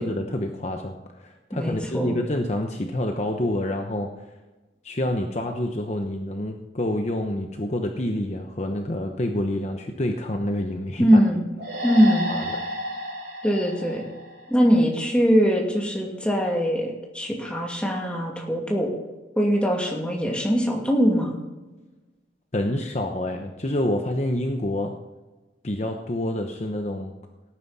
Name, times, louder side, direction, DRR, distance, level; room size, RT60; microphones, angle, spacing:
voice 1, 0.0-4.1 4.8-11.2 12.3-12.5 22.5-24.9 25.6-27.1, left 1 dB, 40° left, 4 dB, 0.9 m, -27 dB
voice 2, 1.5-2.3 11.0-11.4 11.8-12.3 13.4-14.0 14.5-18.9 19.4-21.4, equal, 5° left, -1 dB, 2.4 m, -22 dB
sound 1, 11.6-15.1, equal, 85° right, 3.9 m, -32 dB
18.0 x 9.6 x 4.2 m, 1.2 s
head